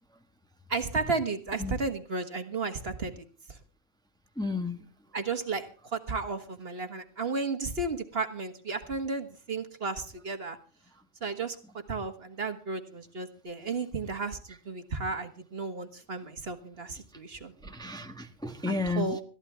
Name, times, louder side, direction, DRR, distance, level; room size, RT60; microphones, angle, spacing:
voice 1, 0.7-3.6 5.1-10.6 11.2-11.6 11.9-17.5 18.7-19.2, right 4 dB, 50° right, 8 dB, 1.7 m, -33 dB
voice 2, 4.4-4.8 17.6-19.2, left 3 dB, 5° left, 6 dB, 1.2 m, -32 dB
21.0 x 15.0 x 3.5 m, 0.35 s
omnidirectional pair, 1.3 m